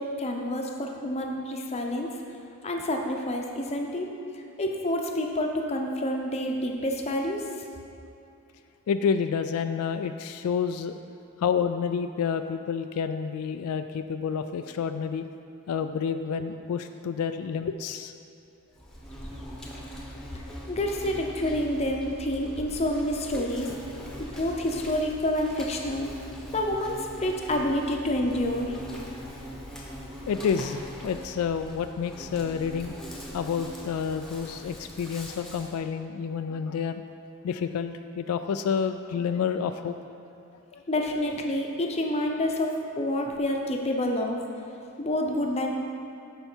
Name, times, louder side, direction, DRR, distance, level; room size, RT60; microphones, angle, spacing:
voice 1, 0.0-2.1 2.6-7.4 20.3-23.7 24.2-26.1 26.5-28.8 40.9-44.4 45.0-45.7, left 1 dB, 30° left, 2 dB, 0.7 m, -28 dB
voice 2, 8.9-11.0 11.4-15.3 15.7-18.1 23.4-23.5 30.3-32.9 33.3-37.0 37.4-40.0 40.7-40.8, left 6 dB, 80° left, 9 dB, 0.3 m, -29 dB
Insect, 18.7-35.8, equal, ahead, 0.9 m, -41 dB
12.5 x 4.5 x 4.4 m, 2.7 s
head